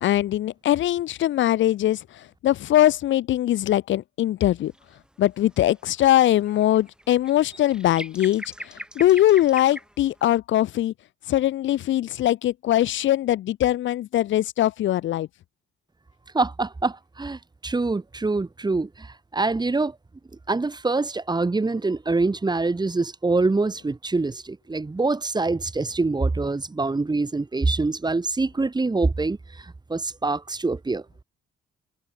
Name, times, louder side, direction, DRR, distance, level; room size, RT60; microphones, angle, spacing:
voice 1, 0.0-4.7 5.2-10.9 11.3-15.3, left 13 dB, 75° left, 1.0 m, -21 dB
sound 1, 4.7-5.1 5.4-10.2, right 1 dB, 5° right, 6.6 m, -41 dB
voice 2, 16.3-20.0 20.5-31.0, right 3 dB, 20° right, 3.5 m, -25 dB
cardioid pair, 90°, 20 cm